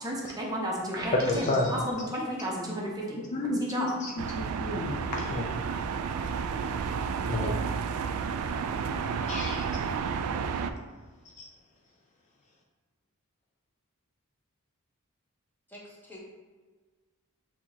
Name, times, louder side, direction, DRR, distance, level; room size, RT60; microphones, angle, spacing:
voice 1, 0.0-3.2 3.7-3.9 4.9-5.0 5.6-5.8, equal, 15° right, -3 dB, 0.7 m, -33 dB
voice 2, 1.1-1.8 3.2-5.5 7.3-7.6 9.3-9.7 11.3-11.5, left 2 dB, 35° left, -1 dB, 0.4 m, -30 dB
sound 1, 4.2-10.7, right 6 dB, 85° right, 0.3 m, -31 dB
voice 3, 15.7-16.2, left 1 dB, 10° left, -5 dB, 1.0 m, -46 dB
6.4 x 2.9 x 2.8 m, 1.4 s
head